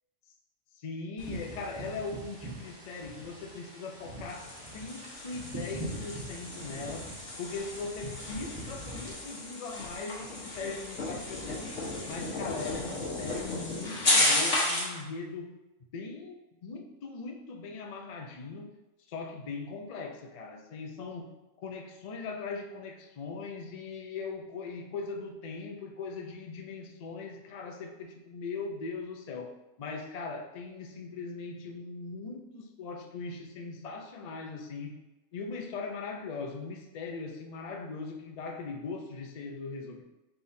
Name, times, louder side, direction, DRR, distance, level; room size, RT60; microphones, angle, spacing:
voice 1, 0.7-7.1 7.4-11.7 12.1-15.5 15.9-18.7 19.1-21.3 21.6-34.9 35.3-40.0, left 4 dB, 85° left, 2 dB, 0.3 m, -40 dB
sound 1, 1.2-9.1, right 1 dB, 20° right, 1.0 m, -43 dB
sound 2, 4.3-15.0, left 1 dB, 60° left, 1.4 m, -33 dB
4.5 x 3.6 x 2.6 m, 1.0 s
omnidirectional pair, 1.4 m